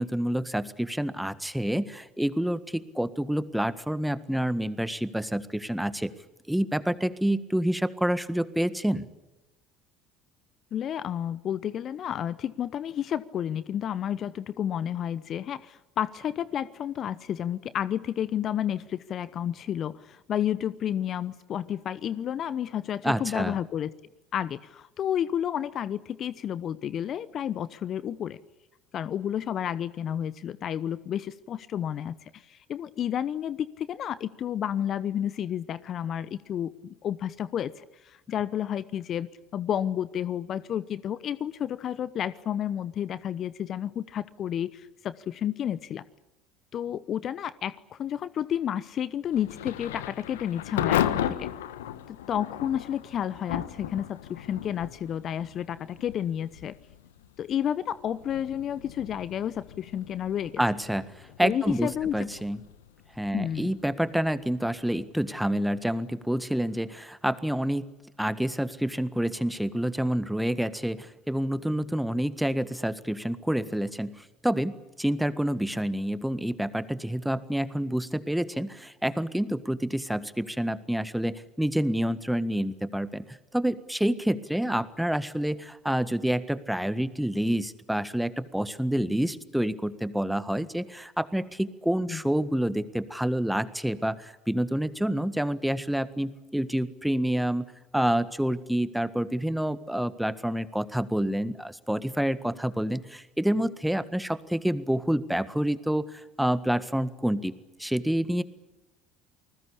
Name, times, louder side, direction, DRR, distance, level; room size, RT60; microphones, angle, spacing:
voice 1, 0.0-6.1 6.5-9.1 23.0-23.6 60.6-62.6 63.2-67.9 68.2-97.7 97.9-107.5 107.8-108.4, right 1 dB, 5° right, 14 dB, 1.7 m, -28 dB
voice 2, 10.7-23.9 24.3-28.4 28.9-46.0 46.7-51.5 52.1-56.7 57.4-60.6 61.4-62.3 63.3-63.7 92.1-92.2, left 10 dB, 45° left, 18 dB, 0.9 m, -31 dB
Thunder / Rain, 49.3-66.0, left 11 dB, 75° left, 1.2 m, -36 dB
29.0 x 20.0 x 8.6 m, 0.99 s
hypercardioid pair, 65°, 0 cm